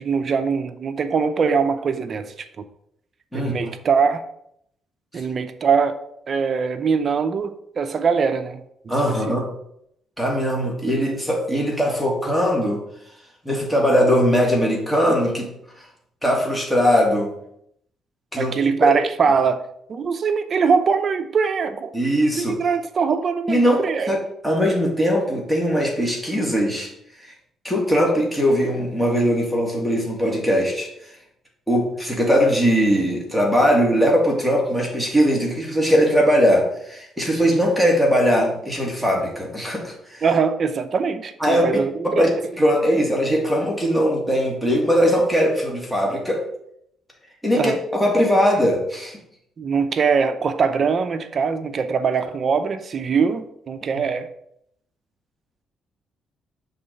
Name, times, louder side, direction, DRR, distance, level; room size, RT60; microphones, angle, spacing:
voice 1, 0.0-2.6 3.3-4.2 5.1-6.0 6.3-9.4 18.4-21.9 22.3-24.1 40.2-42.3 47.5-47.8 49.6-54.3, right 5 dB, 50° right, 10 dB, 0.6 m, -22 dB
voice 2, 3.3-3.7 8.9-9.5 10.2-12.8 13.5-15.5 16.2-17.3 18.3-18.9 21.9-22.6 23.5-24.2 24.4-26.9 27.2-27.3 27.6-30.9 31.7-40.2 41.4-41.7 42.2-42.3 42.6-46.5 47.4-47.7 48.0-49.2, equal, 5° left, -2 dB, 2.0 m, -20 dB
6.8 x 3.9 x 5.3 m, 0.73 s
cardioid pair, 90°, 0 cm